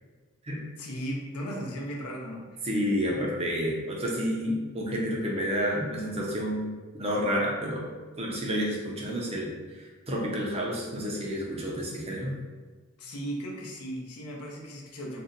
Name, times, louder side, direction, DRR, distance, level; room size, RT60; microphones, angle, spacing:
voice 1, 0.8-2.7 13.0-15.2, equal, 75° left, 0 dB, 0.6 m, -36 dB
voice 2, 2.6-7.9 8.2-12.3, equal, 25° right, -3 dB, 0.5 m, -30 dB
2.6 x 2.1 x 3.8 m, 1.4 s
head